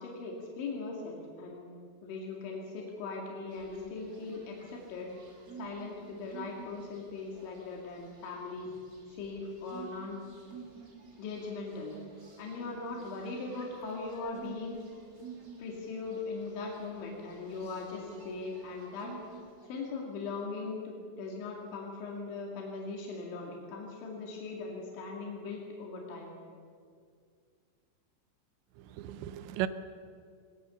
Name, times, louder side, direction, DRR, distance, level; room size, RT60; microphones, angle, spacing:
voice 1, 0.0-1.7 2.0-5.1 5.6-8.7 9.1-10.2 11.2-12.0 12.4-14.8 15.6-19.2 19.6-26.4, left 4 dB, 80° left, -1 dB, 4.8 m, -40 dB
sound 1, 3.5-20.2, right 6 dB, 35° right, 1.5 m, -51 dB
voice 2, 28.8-29.7, right 14 dB, 80° right, 13 dB, 2.9 m, -35 dB
21.0 x 19.5 x 7.1 m, 2.2 s
omnidirectional pair, 5.3 m